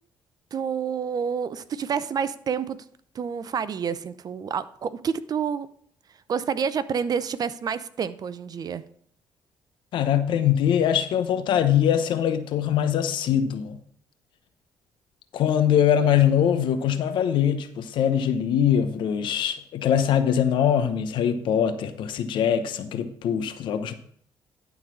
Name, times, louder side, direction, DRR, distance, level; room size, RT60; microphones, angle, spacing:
voice 1, 0.5-2.8 3.1-5.7 6.3-8.8, right 7 dB, 50° right, 15 dB, 0.6 m, -28 dB
voice 2, 9.9-13.8 15.3-23.9, left 9 dB, 75° left, 9 dB, 0.9 m, -22 dB
12.0 x 4.0 x 6.2 m, 0.63 s
supercardioid pair, 70°, 8 cm